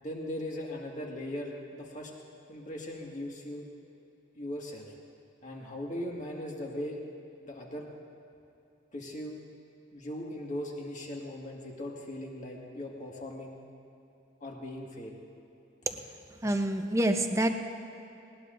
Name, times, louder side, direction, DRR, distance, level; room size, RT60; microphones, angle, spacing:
voice 1, 0.0-2.1 2.5-3.7 4.4-4.9 5.4-7.0 7.4-7.9 8.9-9.4 9.9-13.6 14.4-15.1, left 1 dB, 40° left, -1 dB, 1.9 m, -39 dB
voice 2, 16.4-17.5, right 1 dB, 15° right, 6 dB, 0.7 m, -27 dB
19.5 x 19.0 x 2.6 m, 2.9 s
head